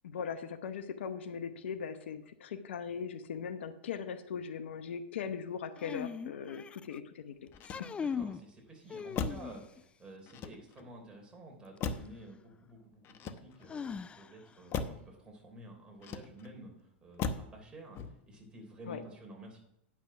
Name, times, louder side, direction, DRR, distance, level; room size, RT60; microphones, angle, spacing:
voice 1, 0.0-7.5 7.8-7.9 18.9-19.0, left 7 dB, 75° left, 11 dB, 0.8 m, -39 dB
sound 1, 5.8-7.0 7.5-8.4 8.9-9.8 11.8-11.9 13.7-14.5, left 6 dB, 15° left, 0.3 m, -40 dB
Motor vehicle (road), 7.5-8.3 9.1-9.6 10.3-10.9 11.8-12.3 13.0-13.8 14.7-15.1 16.0-16.6 17.2-17.6 17.9-18.4, left 5 dB, 40° left, 0.8 m, -38 dB
voice 2, 8.0-13.9 14.1-19.6, right 1 dB, 15° right, 0 dB, 3.4 m, -51 dB
9.6 x 6.0 x 5.7 m, 0.80 s
hypercardioid pair, 105°, 6 cm